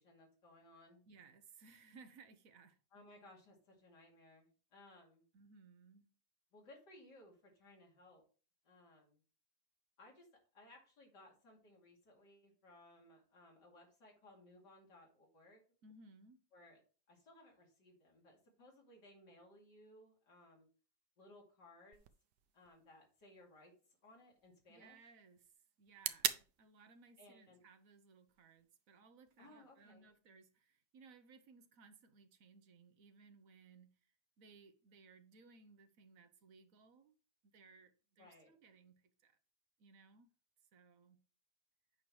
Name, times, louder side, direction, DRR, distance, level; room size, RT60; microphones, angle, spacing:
voice 1, 0.0-1.0 2.9-5.3 6.5-8.2 8.6-9.2 10.0-10.3 10.5-15.6 16.5-16.8 17.1-20.7 21.2-22.0 22.5-23.7 24.0-25.0 27.2-27.6 29.4-30.1 38.2-38.5, left 1 dB, 90° left, 3.1 m, -62 dB
voice 2, 1.1-2.8 5.3-6.1 15.8-16.4 24.7-37.1 37.4-39.4 39.8-40.3 40.7-41.2, right 4 dB, 60° right, 1.2 m, -63 dB
sound 1, 21.9-29.9, right 11 dB, 90° right, 1.2 m, -47 dB
8.6 x 5.6 x 3.2 m
omnidirectional pair, 1.8 m